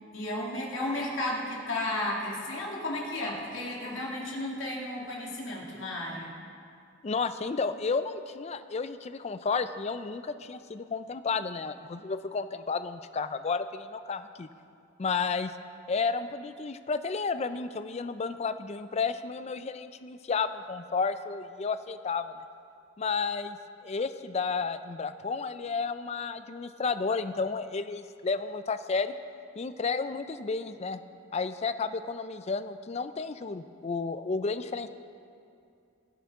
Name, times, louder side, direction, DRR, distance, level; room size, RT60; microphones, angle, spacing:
voice 1, 0.1-6.4, left 1 dB, 75° left, -3 dB, 2.5 m, -33 dB
voice 2, 7.0-14.5 15.0-15.5 15.9-22.4 23.0-29.1 29.6-31.0 31.3-34.9, left 4 dB, 35° left, 11 dB, 0.4 m, -32 dB
21.0 x 8.2 x 3.7 m, 2.5 s
head